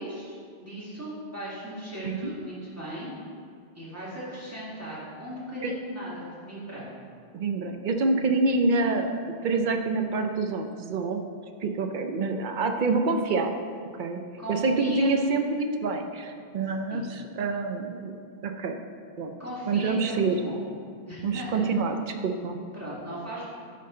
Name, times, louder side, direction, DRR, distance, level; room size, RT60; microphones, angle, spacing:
voice 1, 0.0-3.1 3.8-6.9 14.4-15.1 16.9-17.2 19.4-20.6 21.1-21.6 22.7-23.5, equal, 15° right, -9 dB, 1.8 m, -37 dB
voice 2, 7.3-11.2 11.6-13.5 14.0-14.2 14.5-18.8 19.2-19.3 19.7-20.4 21.2-22.6, right 3 dB, 55° right, 5 dB, 0.6 m, -27 dB
10.5 x 3.7 x 3.7 m, 2.2 s
omnidirectional pair, 1.1 m